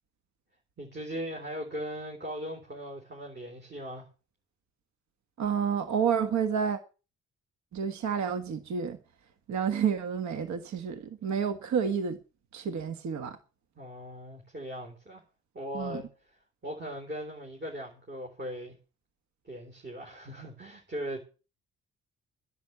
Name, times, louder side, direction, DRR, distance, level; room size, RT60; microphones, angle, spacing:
voice 1, 0.8-4.1 13.8-15.2 15.5-16.1 16.6-18.8 19.4-21.2, equal, 35° right, 3.8 m, -39 dB
voice 2, 5.4-6.8 7.7-9.0 9.5-12.2 12.5-13.4 15.7-16.0, right 7 dB, 70° right, 1.6 m, -29 dB
10.5 x 8.3 x 8.2 m
cardioid pair, 90°, 30 cm